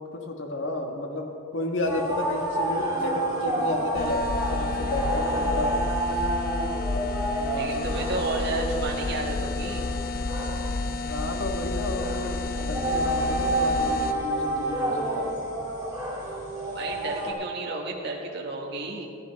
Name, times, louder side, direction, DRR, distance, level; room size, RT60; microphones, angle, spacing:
voice 1, 0.0-5.8 7.4-8.3 11.1-15.3, left 1 dB, 80° left, 2 dB, 1.5 m, -32 dB
sound 1, 1.8-17.3, right 1 dB, 20° right, 2.5 m, -29 dB
sound 2, 3.9-14.1, left 3 dB, 50° left, 0.6 m, -31 dB
voice 2, 7.6-9.9 16.7-19.1, right 2 dB, 60° right, -1 dB, 1.8 m, -32 dB
15.5 x 14.5 x 3.5 m, 2.5 s
head